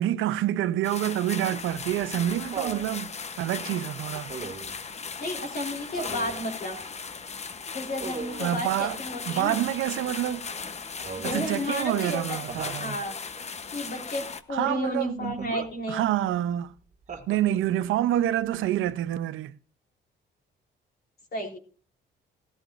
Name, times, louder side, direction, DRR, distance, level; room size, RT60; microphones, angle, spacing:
voice 1, 0.0-4.3 8.4-9.0 9.3-10.5 11.2-13.0 14.5-16.7 17.3-19.6, right 12 dB, 85° right, 0.6 m, -27 dB
sound 1, 0.8-14.4, left 5 dB, 35° left, 0.9 m, -37 dB
Laughter, 1.6-2.9 4.3-4.8 6.0-6.4 8.0-8.5 11.0-11.5 12.5-12.8 15.2-15.7 17.1-17.7 19.1-19.2, right 5 dB, 40° right, 1.8 m, -38 dB
voice 2, 5.2-6.8 7.7-9.6 11.2-12.4 12.8-13.1 13.7-16.0 21.3-21.6, left 1 dB, 50° left, 3.8 m, -32 dB
17.0 x 13.0 x 2.5 m
cardioid pair, 90°, 20 cm